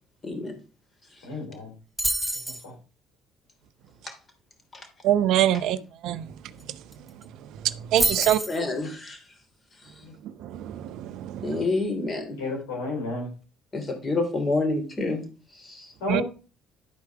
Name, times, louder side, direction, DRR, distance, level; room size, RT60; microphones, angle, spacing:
voice 1, 0.2-0.5 4.0-4.1 4.7-4.9 8.5-9.2 11.4-12.4 13.7-15.2 15.5-15.9, left 2 dB, 35° left, 3.1 m, -28 dB
voice 2, 1.2-1.7 2.6-2.7 10.0-10.1 12.4-13.3 16.0-16.2, left 2 dB, 80° left, 3.5 m, -31 dB
sound 1, 2.0-2.6 6.6-6.7 6.9-7.2 8.0-8.6, right 1 dB, ahead, 2.4 m, -27 dB
voice 3, 5.0-5.8 6.0-6.3 7.6-8.4 10.4-11.5 16.1-16.2, right 12 dB, 70° right, 0.5 m, -24 dB
11.0 x 4.6 x 4.7 m
hypercardioid pair, 60°, 0 cm